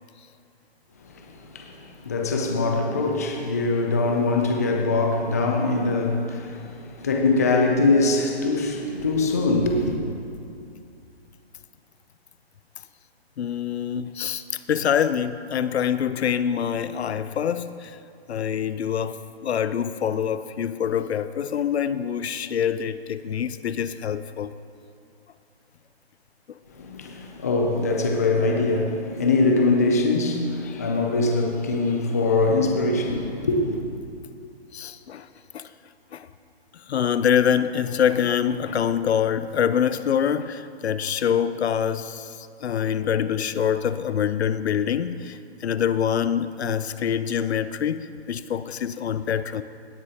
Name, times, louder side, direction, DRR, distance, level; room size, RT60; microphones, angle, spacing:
voice 1, 1.0-10.0 26.7-33.8, left 3 dB, 15° left, 0.4 m, -23 dB
voice 2, 13.4-18.0 18.3-24.5 34.7-35.3 35.5-35.7 36.1-36.3 36.9-49.6, left 8 dB, 80° left, 0.5 m, -25 dB
17.0 x 9.6 x 2.8 m
hypercardioid pair, 155°, 32 cm